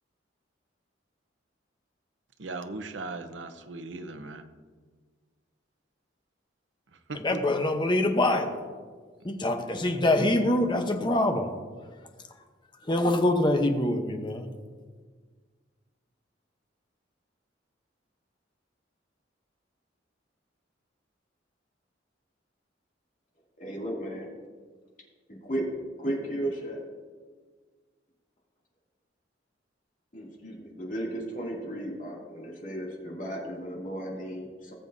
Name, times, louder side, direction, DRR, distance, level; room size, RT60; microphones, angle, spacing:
voice 1, 2.4-4.4 7.1-7.4, right 3 dB, 75° right, 0.8 m, -38 dB
voice 2, 7.1-8.7 9.2-11.5 12.8-14.5, left 1 dB, 25° left, 0.9 m, -25 dB
voice 3, 23.6-24.3 25.3-26.8 30.1-34.7, right 1 dB, 45° left, 2.5 m, -34 dB
19.0 x 7.5 x 2.7 m
head